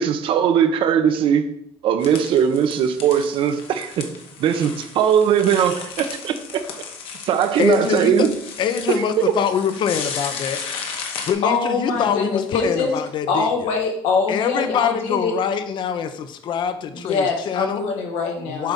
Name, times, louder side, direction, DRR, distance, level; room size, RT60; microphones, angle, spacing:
voice 1, 0.0-1.5 1.8-4.1 4.4-6.6 7.2-8.3, right 8 dB, 60° right, 0.8 m, -19 dB
sound 1, 2.0-11.3, left 6 dB, 65° left, 1.2 m, -35 dB
voice 2, 7.6-8.3 8.6-10.6 11.3-13.7 14.3-17.8 18.4-18.7, left 7 dB, 50° left, 0.7 m, -24 dB
voice 3, 11.4-12.9 13.3-15.3 16.9-18.7, left 4 dB, 85° left, 1.7 m, -23 dB
7.8 x 3.5 x 5.3 m
cardioid pair, 130°, 10 cm